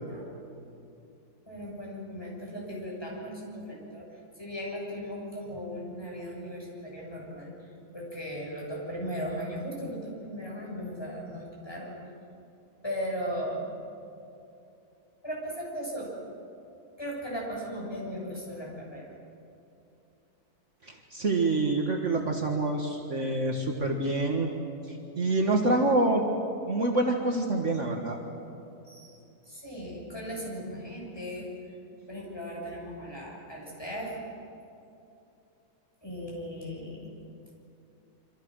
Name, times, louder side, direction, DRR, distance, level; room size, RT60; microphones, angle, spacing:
voice 1, 1.5-4.1 4.4-7.5 7.9-11.9 12.8-13.7 15.2-16.1 17.0-19.1 28.8-29.2 29.5-31.5 32.1-34.1 36.0-37.2, equal, 15° left, -3 dB, 7.2 m, -37 dB
voice 2, 20.8-24.5 24.9-26.3 26.7-28.2, right 2 dB, 50° right, 1 dB, 2.1 m, -26 dB
27.0 x 26.0 x 6.4 m, 2.8 s
omnidirectional pair, 1.6 m